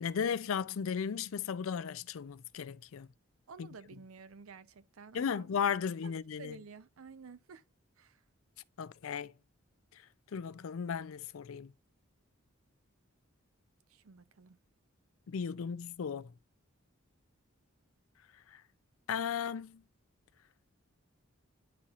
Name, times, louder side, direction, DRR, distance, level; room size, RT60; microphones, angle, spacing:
voice 1, 0.0-3.1 3.6-3.7 5.1-6.6 8.8-9.3 10.3-11.7 15.3-16.3 18.5-18.6 19.1-19.8, left 7 dB, 75° left, 0.4 m, -35 dB
voice 2, 3.5-5.5 6.0-7.6 8.0-8.2 13.9-14.6, right 5 dB, 80° right, 0.6 m, -52 dB
10.5 x 4.2 x 2.4 m
head